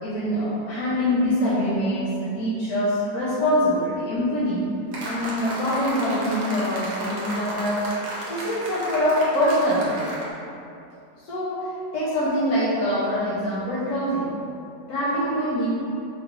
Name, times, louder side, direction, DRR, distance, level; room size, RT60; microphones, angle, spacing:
voice 1, 0.0-4.6 5.0-7.8 8.3-10.0 11.2-14.3 14.9-15.7, equal, 70° left, -10 dB, 1.2 m, -24 dB
sound 1, 4.9-10.3, equal, 75° right, 1.3 m, -33 dB
3.9 x 2.3 x 2.9 m, 2.7 s
omnidirectional pair, 1.8 m